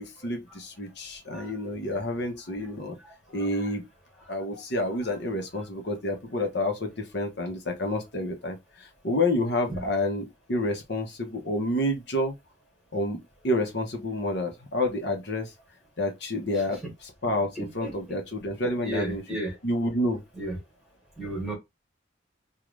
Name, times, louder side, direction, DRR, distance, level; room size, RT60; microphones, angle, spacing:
voice 1, 0.0-3.0 3.3-3.8 4.3-12.3 12.9-13.2 13.4-15.5 16.0-19.4 19.6-20.2, left 1 dB, 60° left, 1.0 m, -29 dB
voice 2, 17.6-17.9 18.8-19.5 20.4-20.6 21.2-21.5, right 1 dB, ahead, 1.7 m, -33 dB
3.7 x 2.4 x 3.1 m
head